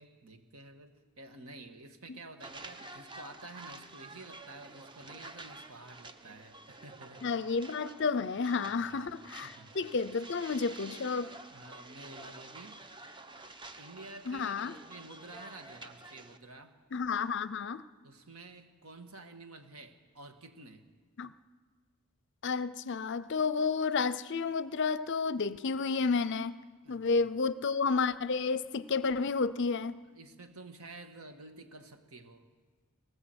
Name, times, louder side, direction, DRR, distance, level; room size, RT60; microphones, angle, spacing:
voice 1, 0.0-7.3 8.6-9.1 9.4-9.8 11.5-12.8 13.8-16.8 18.0-20.9 26.8-27.3 30.1-32.5, right 2 dB, 75° right, 1.7 m, -50 dB
sound 1, 2.4-16.4, right 2 dB, 20° right, 0.9 m, -50 dB
voice 2, 7.2-11.3 14.3-14.8 16.9-17.8 21.2-21.3 22.4-26.6 26.9-30.0, left 4 dB, 50° left, 0.5 m, -31 dB
19.5 x 19.0 x 8.0 m
head